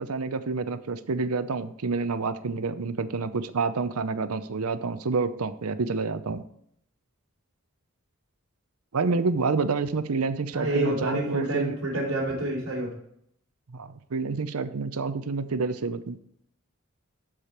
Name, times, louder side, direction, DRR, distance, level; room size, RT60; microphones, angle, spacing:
voice 1, 0.0-6.5 8.9-11.8 13.7-16.2, right 4 dB, 85° right, 12 dB, 0.7 m, -28 dB
voice 2, 10.5-12.9, right 1 dB, 70° right, -4 dB, 3.1 m, -28 dB
12.0 x 5.0 x 4.4 m, 0.72 s
head